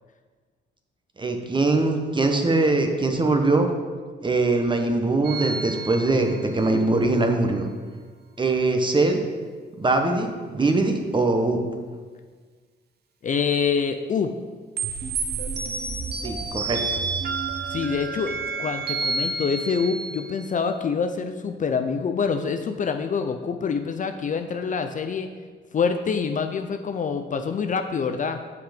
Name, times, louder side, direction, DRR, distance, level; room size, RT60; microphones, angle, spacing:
voice 1, 1.2-3.7 4.2-7.7 8.4-9.2 9.8-11.6 16.2-16.8, right 2 dB, 25° right, 4 dB, 1.1 m, -22 dB
sound 1, 5.2-6.8 14.8-20.5, right 4 dB, 55° right, 1.0 m, -30 dB
voice 2, 13.2-14.3 17.7-25.3 25.7-28.4, left 5 dB, 40° left, 7 dB, 0.5 m, -26 dB
7.8 x 5.7 x 5.1 m, 1.5 s
cardioid pair, 90°, 20 cm